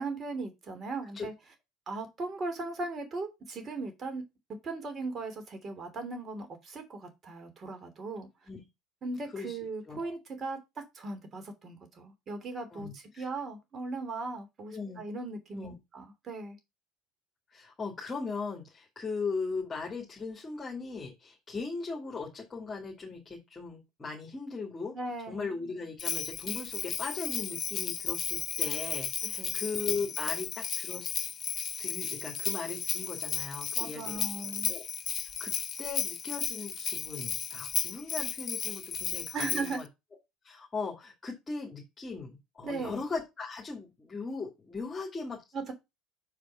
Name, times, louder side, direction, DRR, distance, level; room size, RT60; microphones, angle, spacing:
voice 1, 0.0-1.3 1.9-4.2 4.5-8.3 9.0-10.6 10.9-16.6 24.9-25.5 29.2-29.6 33.7-34.7 39.3-39.8 42.6-43.0 45.5-45.7, right 3 dB, 35° right, 6 dB, 3.1 m, -38 dB
voice 2, 9.9-10.2 12.7-13.3 14.7-15.0 15.5-15.7 17.5-24.9 25.3-31.1 31.8-34.2 34.7-34.8 35.4-39.9 40.4-45.4, left 4 dB, 25° left, -2 dB, 2.5 m, -38 dB
Bell, 26.0-39.8, left 8 dB, 40° left, 0.7 m, -34 dB
6.2 x 5.0 x 5.7 m, 0.22 s
hypercardioid pair, 75°, 0 cm